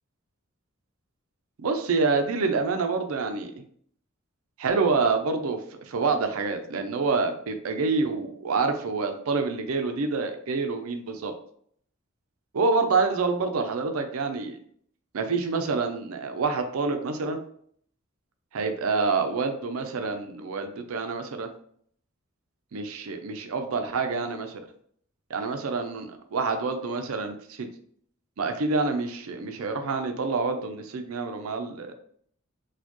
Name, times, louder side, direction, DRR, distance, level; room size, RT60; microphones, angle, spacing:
voice 1, 1.6-3.5 4.6-11.3 12.5-14.6 15.1-17.4 18.5-21.5 22.7-24.6 25.3-27.7 28.4-31.9, right 4 dB, 85° right, 7 dB, 0.5 m, -27 dB
4.1 x 2.3 x 3.0 m, 0.63 s
head